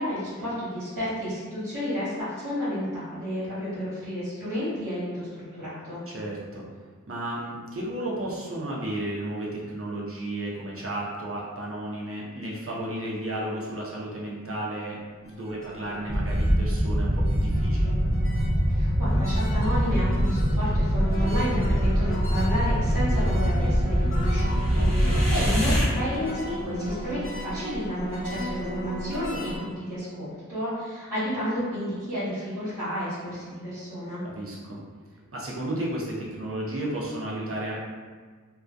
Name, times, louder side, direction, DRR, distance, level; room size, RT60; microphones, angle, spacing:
voice 1, 0.0-6.0 18.7-34.2, equal, 80° right, -13 dB, 1.0 m, -31 dB
voice 2, 6.1-6.6 7.1-15.0 15.2-17.9 24.7-25.3 34.2-34.8 35.3-37.8, right 1 dB, 45° right, -5 dB, 0.7 m, -33 dB
sound 1, 15.2-29.6, equal, 40° left, 0.8 m, -36 dB
sound 2, 16.1-25.8, equal, 5° left, 0.7 m, -23 dB
2.2 x 2.2 x 2.5 m, 1.5 s
wide cardioid pair, 50°, 32 cm